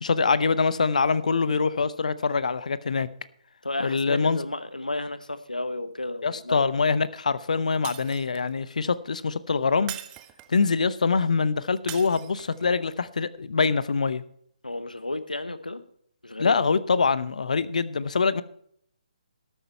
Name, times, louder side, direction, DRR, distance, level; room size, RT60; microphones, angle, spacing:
voice 1, 0.0-3.1 3.8-4.4 6.2-9.9 10.5-14.2 16.4-18.4, left 4 dB, 65° left, 17 dB, 0.7 m, -24 dB
voice 2, 3.6-6.6 14.6-15.8 16.2-16.5, left 2 dB, 90° left, 13 dB, 1.1 m, -32 dB
Shatter, 7.8-8.6 9.9-10.7 11.9-12.7, right 14 dB, 15° right, 0.6 m, -40 dB
12.5 x 9.1 x 4.3 m, 0.67 s
figure-of-eight pair, 140°, 4 cm